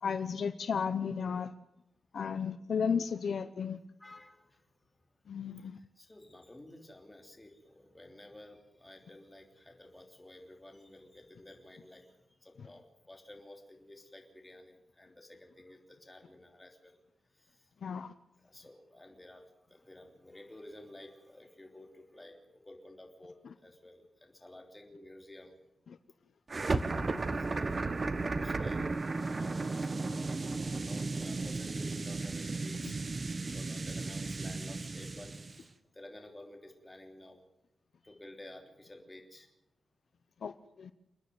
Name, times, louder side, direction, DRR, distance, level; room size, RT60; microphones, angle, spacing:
voice 1, 0.0-1.5 2.1-3.8 5.3-5.8 17.8-18.1 26.7-27.2 40.4-40.9, left 6 dB, 70° left, 11 dB, 0.8 m, -34 dB
voice 2, 4.0-4.6 6.0-12.1 12.4-16.9 17.4-17.6 18.4-19.4 19.7-23.4 23.6-25.5 27.5-33.0 33.4-35.7 35.9-37.4 38.0-39.5, left 1 dB, 15° left, 3 dB, 3.3 m, -53 dB
sound 1, 26.5-35.6, right 3 dB, 30° right, 1.1 m, -34 dB
29.0 x 9.7 x 9.5 m, 0.86 s
wide cardioid pair, 155°, 0 cm